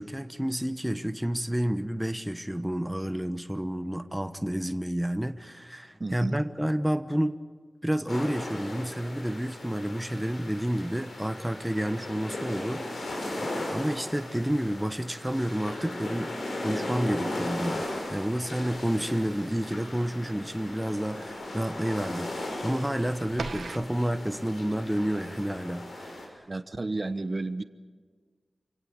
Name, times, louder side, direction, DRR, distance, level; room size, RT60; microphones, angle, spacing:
voice 1, 0.0-7.4 7.8-16.3 16.6-26.4, equal, 5° right, 9 dB, 1.1 m, -30 dB
voice 2, 6.0-6.4 26.5-27.6, right 2 dB, 40° right, 11 dB, 1.1 m, -32 dB
sound 1, 8.1-26.3, left 1 dB, 80° left, 6.4 m, -37 dB
sound 2, 17.7-23.9, right 4 dB, 85° right, 1.7 m, -43 dB
27.5 x 17.5 x 8.7 m, 1.5 s
wide cardioid pair, 90°, 0 cm